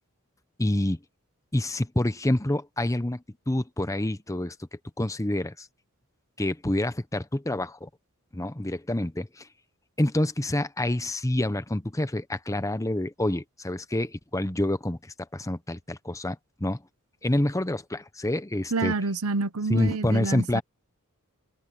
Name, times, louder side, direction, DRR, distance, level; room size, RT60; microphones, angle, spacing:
voice 1, 0.6-1.0 1.5-4.5 5.0-5.7 6.4-7.9 8.3-9.5 10.0-16.8 17.2-18.9 19.7-20.6, left 1 dB, 15° left, 0.9 m, -27 dB
voice 2, 18.7-20.6, right 3 dB, 80° right, 1.0 m, -28 dB
head